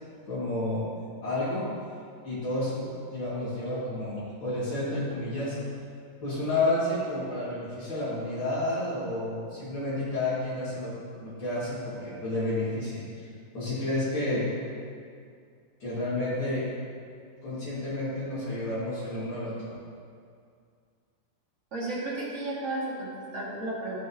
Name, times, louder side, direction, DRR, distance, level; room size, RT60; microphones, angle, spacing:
voice 1, 0.3-0.8 1.2-1.7 2.2-5.6 6.2-10.9 11.2-13.0 13.5-14.4 15.8-16.7 17.4-19.7, left 2 dB, 80° left, -12 dB, 3.2 m, -30 dB
voice 2, 21.7-24.0, right 2 dB, 40° right, -8 dB, 2.5 m, -33 dB
13.0 x 6.2 x 3.0 m, 2.2 s
omnidirectional pair, 2.1 m